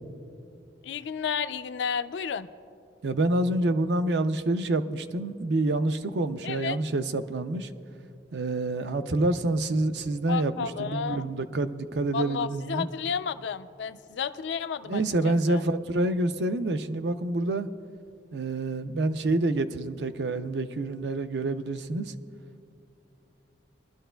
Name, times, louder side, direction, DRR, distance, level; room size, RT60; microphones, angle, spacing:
voice 1, 0.8-2.5 6.4-6.8 10.3-11.3 12.1-15.6, left 6 dB, 90° left, 12 dB, 0.4 m, -32 dB
voice 2, 3.0-7.7 8.3-12.9 14.9-17.7 18.3-22.0, right 2 dB, 75° right, 10 dB, 0.5 m, -27 dB
22.5 x 12.0 x 2.2 m, 2.6 s
head